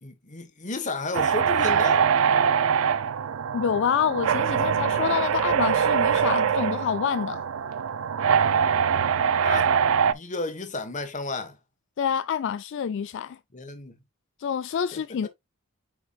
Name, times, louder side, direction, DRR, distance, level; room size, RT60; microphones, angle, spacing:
voice 1, 0.0-2.1 9.4-9.7 10.1-11.6 13.5-14.0 14.9-15.3, left 3 dB, 35° left, 1.3 m, -32 dB
sound 1, 1.1-10.1, right 7 dB, 70° right, 0.4 m, -23 dB
voice 2, 3.5-7.5 12.0-13.4 14.4-15.3, left 8 dB, 60° left, 0.3 m, -27 dB
8.5 x 4.6 x 2.4 m
head